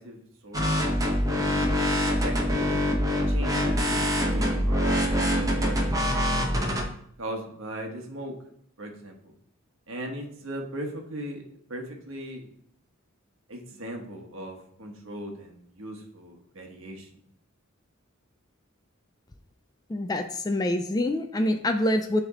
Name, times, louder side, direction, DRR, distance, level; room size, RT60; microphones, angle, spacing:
voice 1, 0.0-1.7 2.0-2.7 3.3-5.8 6.2-6.5 7.2-8.3 8.8-9.1 9.9-11.4 11.7-12.5 13.5-17.1, right 1 dB, 65° right, 2 dB, 1.2 m, -38 dB
sound 1, 0.5-6.8, equal, 15° right, 0.9 m, -24 dB
voice 2, 19.9-22.2, left 1 dB, 20° left, 5 dB, 0.4 m, -26 dB
10.0 x 3.4 x 3.7 m, 0.68 s
head